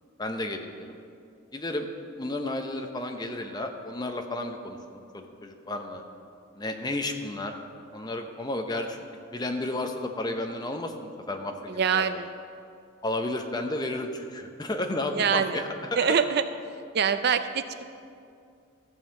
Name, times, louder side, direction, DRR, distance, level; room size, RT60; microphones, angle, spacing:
voice 1, 0.2-1.0 1.5-1.9 2.2-6.0 6.6-7.5 7.9-9.0 9.3-12.1 13.0-15.7, left 2 dB, 20° left, 5 dB, 0.7 m, -32 dB
voice 2, 11.7-12.3 15.1-15.6 16.0-16.4 16.9-17.8, right 7 dB, 50° right, 11 dB, 0.4 m, -24 dB
14.0 x 5.5 x 7.5 m, 2.4 s
head